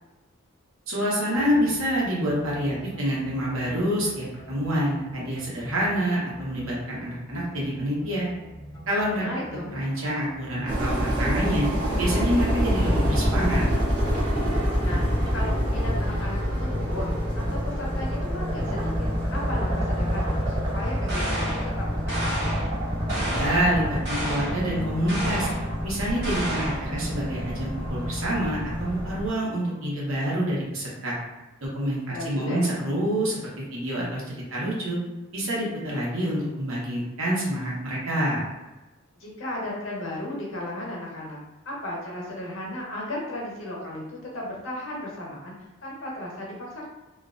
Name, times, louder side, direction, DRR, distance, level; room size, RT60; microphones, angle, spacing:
voice 1, 0.9-8.3 8.9-9.2 9.7-11.7 12.0-13.7 23.1-25.5 25.8-31.2 31.6-33.4 33.7-34.2 34.5-35.0 35.3-38.4, equal, 80° right, -5 dB, 0.9 m, -27 dB
sound 1, 1.3-11.3, right 1 dB, 20° left, 0.3 m, -45 dB
voice 2, 9.1-9.7 14.8-17.1 17.4-22.4 32.1-32.7 39.2-41.4 41.7-45.5 45.8-46.9, left 1 dB, 70° left, -3 dB, 0.8 m, -35 dB
sound 2, 10.7-29.3, equal, 20° right, 0.8 m, -27 dB
sound 3, 21.1-21.7 22.1-22.7 23.1-23.7 24.0-24.6 25.1-25.6 26.2-26.9, right 1 dB, 50° right, 1.0 m, -31 dB
2.4 x 2.1 x 2.5 m, 1.1 s
head